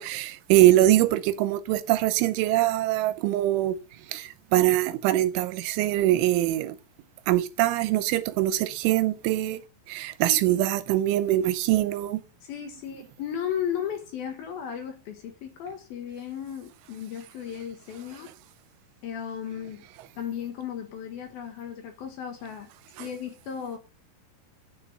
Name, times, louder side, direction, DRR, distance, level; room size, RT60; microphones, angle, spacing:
voice 1, 0.0-3.8 4.1-6.8 7.3-9.6 9.9-12.2 23.0-23.1, right 15 dB, 85° right, 3.2 m, -23 dB
voice 2, 10.2-10.6 12.4-18.3 19.0-19.8 20.2-22.7 23.0-23.8, left 8 dB, 65° left, 2.8 m, -35 dB
9.7 x 6.1 x 7.6 m
omnidirectional pair, 5.4 m